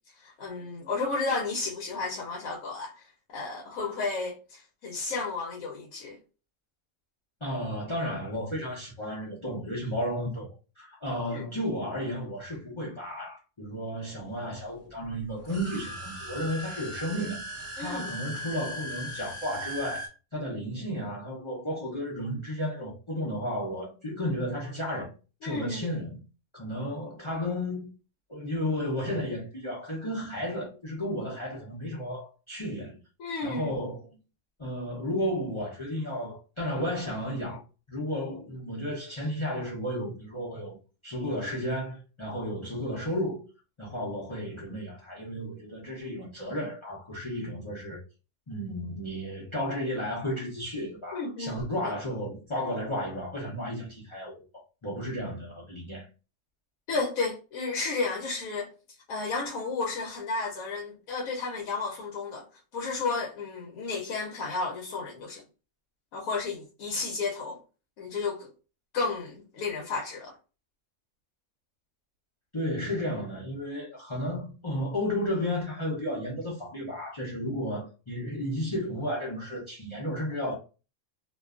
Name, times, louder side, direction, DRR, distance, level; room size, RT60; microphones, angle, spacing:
voice 1, 0.2-6.2 11.3-11.5 17.8-18.1 25.4-25.9 33.2-33.8 51.1-51.6 56.9-58.7 59.1-62.5 62.7-65.4 66.1-67.6 68.0-68.5 68.9-70.4, left 3 dB, 85° left, 1.0 m, -32 dB
voice 2, 7.4-10.5 10.8-17.4 17.8-20.1 20.3-25.1 25.4-26.2 26.5-27.9 28.3-33.0 33.4-34.1 34.6-37.6 37.9-43.4 43.8-48.0 48.5-56.1 72.5-80.6, equal, 30° left, 0.5 m, -33 dB
sound 1, 15.4-20.1, right 1 dB, 15° right, 0.6 m, -38 dB
2.5 x 2.2 x 2.4 m
omnidirectional pair, 1.4 m